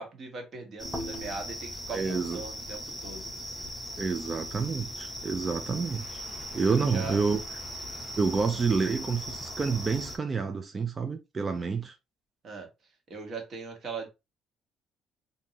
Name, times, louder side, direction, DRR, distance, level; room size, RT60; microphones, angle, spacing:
voice 1, 0.0-3.3 6.6-7.2 12.4-12.7 13.1-14.1, right 4 dB, 40° right, 1.3 m, -39 dB
sound 1, 0.8-10.2, equal, ahead, 0.9 m, -39 dB
voice 2, 1.9-2.4 4.0-6.2 6.5-7.4 8.2-11.9, right 4 dB, 25° right, 0.4 m, -28 dB
3.7 x 2.6 x 2.8 m
cardioid pair, 135°, 0 cm